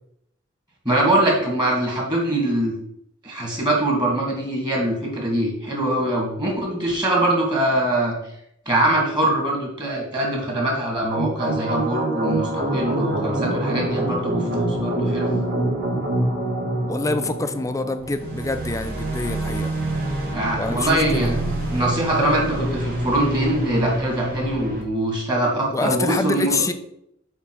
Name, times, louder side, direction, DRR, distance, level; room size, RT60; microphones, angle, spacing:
voice 1, 0.8-2.8 3.2-8.2 8.7-15.3 20.3-21.4 21.7-26.5, right 1 dB, 20° right, 2.4 m, -23 dB
sound 1, 11.1-24.8, right 1 dB, 50° right, 2.2 m, -26 dB
voice 2, 16.9-19.7 20.6-21.3 25.7-26.7, left 2 dB, 15° left, 0.5 m, -26 dB
7.2 x 3.6 x 6.2 m
head